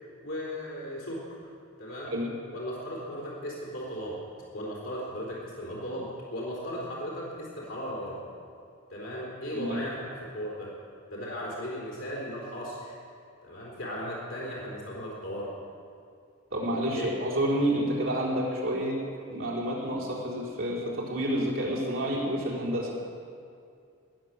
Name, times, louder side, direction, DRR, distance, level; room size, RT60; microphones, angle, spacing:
voice 1, 0.2-1.4 1.8-2.2 2.5-4.2 4.5-8.2 8.9-10.7 11.1-13.0 13.4-15.5 16.7-17.2, equal, 65° left, -5 dB, 3.9 m, -36 dB
voice 2, 16.5-19.0 19.3-22.9, right 1 dB, 65° right, -5 dB, 4.4 m, -29 dB
19.5 x 7.7 x 9.1 m, 2.3 s
head